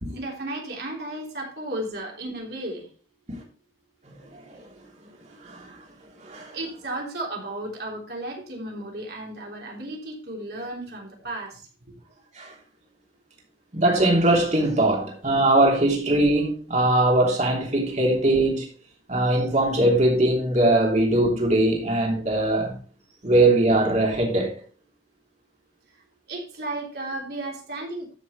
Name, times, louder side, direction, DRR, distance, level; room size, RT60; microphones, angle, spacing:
voice 1, 0.2-2.8 6.5-11.6 26.3-28.1, right 1 dB, 60° right, 3.4 m, -34 dB
voice 2, 4.0-4.7 5.4-5.8 6.2-6.6 12.3-12.5 13.7-18.7 19.1-22.7 23.2-24.6, right 1 dB, 40° right, 3.0 m, -21 dB
13.0 x 6.4 x 3.2 m
head